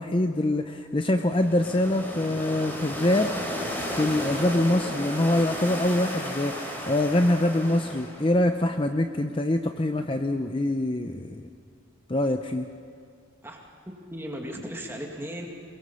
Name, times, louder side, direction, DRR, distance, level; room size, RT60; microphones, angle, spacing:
voice 1, 0.0-3.3 3.9-11.5 12.1-12.7, left 1 dB, 25° left, 6 dB, 0.6 m, -24 dB
sound 1, 1.2-8.3, equal, 10° left, 3.7 m, -34 dB
voice 2, 13.9-15.5, equal, 10° right, 0 dB, 2.3 m, -36 dB
22.5 x 22.0 x 5.6 m, 2.6 s
head